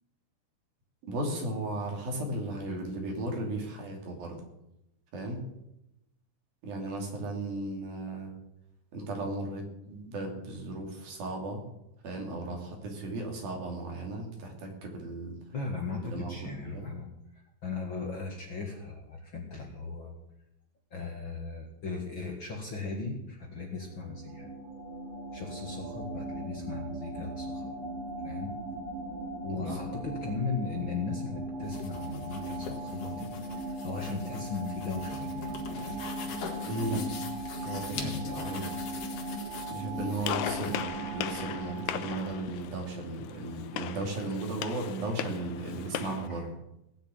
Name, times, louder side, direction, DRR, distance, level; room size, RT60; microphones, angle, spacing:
voice 1, 1.0-4.4 5.1-5.4 6.6-8.3 8.9-11.6 12.0-15.4 16.0-16.9 29.5-29.6 36.6-37.0 37.6-38.7 39.7-46.4, right 2 dB, 75° right, 1 dB, 4.7 m, -36 dB
voice 2, 15.5-17.1 17.3-20.1 20.9-24.5 25.3-27.7 28.2-28.6 29.4-36.0 37.9-38.7 46.2-46.5, left 4 dB, 45° left, 0 dB, 1.9 m, -37 dB
sound 1, 23.6-42.5, right 2 dB, 50° right, 3.4 m, -38 dB
sound 2, 31.6-40.8, left 6 dB, 60° left, 3.0 m, -42 dB
Gunshot gunfire, 40.2-46.3, left 11 dB, 75° left, 2.3 m, -38 dB
18.0 x 6.6 x 8.9 m, 0.86 s
omnidirectional pair, 4.2 m